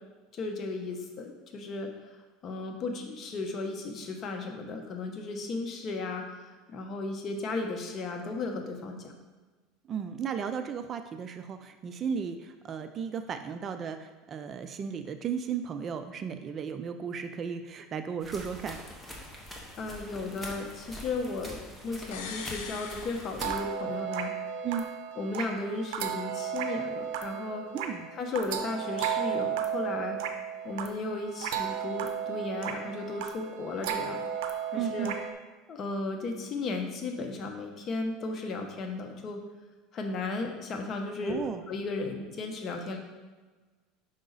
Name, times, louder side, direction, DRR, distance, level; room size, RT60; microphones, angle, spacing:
voice 1, 0.3-1.9 2.4-6.3 6.7-9.1 19.8-21.6 21.8-24.3 25.2-27.6 28.1-30.2 30.6-34.2 34.7-35.1 35.7-39.4 39.9-43.0, left 3 dB, 35° left, 3 dB, 0.9 m, -35 dB
voice 2, 9.9-18.8 24.6-24.9 27.7-28.1 34.7-35.2 41.2-41.6, right 7 dB, 35° right, 9 dB, 0.3 m, -35 dB
sound 1, 18.2-23.5, equal, 5° left, 1.1 m, -44 dB
sound 2, 22.1-24.0 24.3-24.4, left 6 dB, 80° left, 0.7 m, -42 dB
sound 3, 23.4-35.3, right 8 dB, 75° right, 0.6 m, -34 dB
5.5 x 5.0 x 4.0 m, 1.3 s
supercardioid pair, 130°, 0 cm